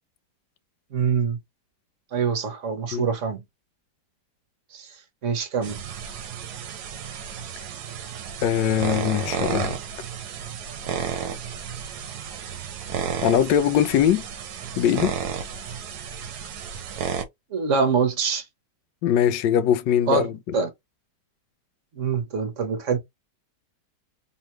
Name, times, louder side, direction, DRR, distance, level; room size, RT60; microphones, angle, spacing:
voice 1, 0.9-1.4 2.1-3.4 4.7-4.9 5.2-5.8 17.5-18.4 20.1-20.7 21.9-23.0, right 6 dB, 50° right, 1.2 m, -24 dB
sound 1, 5.6-17.2, right 7 dB, 65° right, 1.2 m, -32 dB
voice 2, 8.4-9.8 13.2-14.2 14.8-15.1 19.0-20.5, left 9 dB, 80° left, 1.3 m, -21 dB
3.7 x 3.0 x 3.0 m
omnidirectional pair, 1.9 m